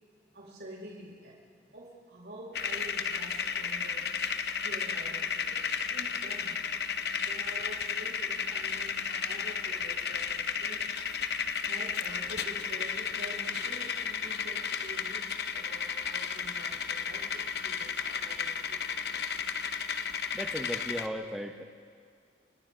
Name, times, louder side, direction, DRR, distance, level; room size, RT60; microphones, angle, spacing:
voice 1, 0.3-1.4 1.7-4.2 4.6-6.8 7.1-10.9 11.6-19.4, right 1 dB, 70° right, -4 dB, 6.6 m, -47 dB
sound 1, 2.5-21.1, left 6 dB, 65° left, 0.9 m, -33 dB
voice 2, 20.3-21.6, equal, ahead, 4 dB, 1.2 m, -36 dB
29.0 x 27.5 x 4.0 m, 2.2 s
head